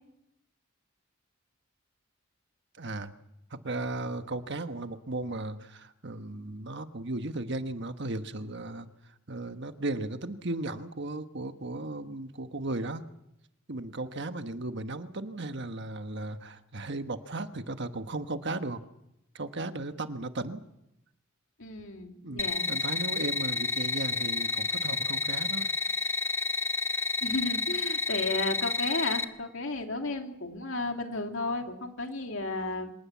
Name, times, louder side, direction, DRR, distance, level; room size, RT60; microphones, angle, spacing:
voice 1, 2.8-3.1 3.5-8.9 9.3-13.0 13.7-18.8 19.3-20.6 22.2-25.7 26.0-26.1, right 2 dB, 60° right, 9 dB, 1.3 m, -36 dB
voice 2, 21.6-22.7 27.2-32.9, left 2 dB, 65° left, 4 dB, 2.7 m, -33 dB
sound 1, 22.4-29.2, left 4 dB, 15° left, 1.0 m, -30 dB
26.0 x 18.5 x 7.3 m, 0.84 s
head